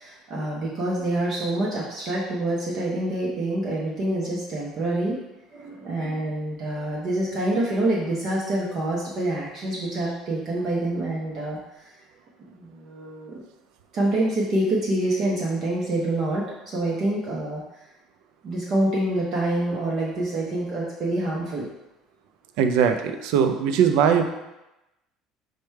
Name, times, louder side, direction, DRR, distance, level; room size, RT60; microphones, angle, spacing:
voice 1, 0.0-5.2 5.5-11.6 12.5-13.4 13.9-17.6 18.4-21.7, right 1 dB, 35° right, -5 dB, 0.7 m, -26 dB
voice 2, 22.6-24.3, right 7 dB, 65° right, 7 dB, 0.4 m, -20 dB
4.8 x 2.2 x 4.5 m, 0.95 s
cardioid pair, 175°, 0 cm